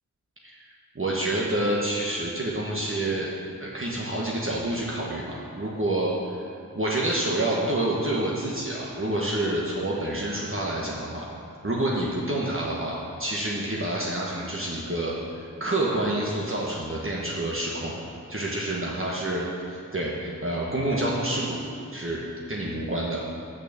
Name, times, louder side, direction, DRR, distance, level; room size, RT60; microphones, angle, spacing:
voice 1, 0.9-3.3 3.6-6.5 6.7-11.3 11.6-18.0 18.3-21.6 21.9-22.2 22.5-23.2, right 1 dB, 40° right, -5 dB, 1.2 m, -28 dB
6.6 x 6.3 x 6.7 m, 2.4 s
wide cardioid pair, 50°, 33 cm